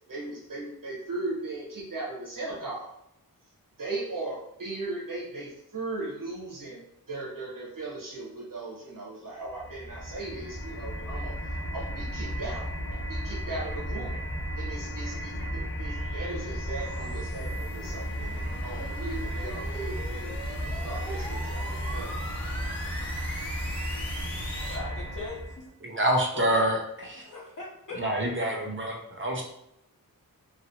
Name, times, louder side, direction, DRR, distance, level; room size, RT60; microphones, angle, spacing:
voice 1, 0.1-2.9 3.8-6.8 7.1-11.3 11.7-14.1 14.6-20.3 20.6-22.1, right 2 dB, 60° right, -5 dB, 1.2 m, -37 dB
sound 1, 9.5-25.6, equal, 30° left, 1.0 m, -34 dB
sound 2, 14.3-24.8, equal, 5° left, 0.9 m, -43 dB
voice 2, 24.5-25.6 26.3-26.6 27.2-28.3, left 3 dB, 55° left, -6 dB, 0.9 m, -40 dB
voice 3, 25.8-27.3 27.9-29.4, right 1 dB, 35° right, 0 dB, 0.7 m, -27 dB
2.9 x 2.6 x 2.8 m, 0.82 s
wide cardioid pair, 65°, 37 cm